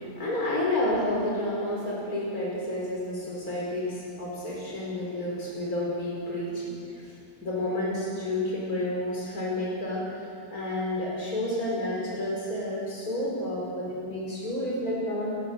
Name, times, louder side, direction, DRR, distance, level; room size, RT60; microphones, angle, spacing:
voice 1, 0.0-7.1 7.4-15.4, left 1 dB, 50° left, -4 dB, 5.3 m, -30 dB
28.5 x 12.5 x 8.1 m, 2.5 s
omnidirectional pair, 2.1 m